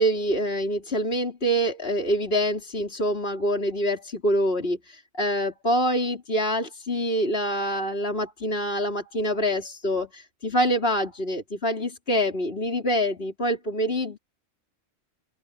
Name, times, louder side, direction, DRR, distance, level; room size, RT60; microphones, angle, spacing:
voice 1, 0.0-14.2, equal, 50° left, 4.9 m, -25 dB
omnidirectional pair, 1.3 m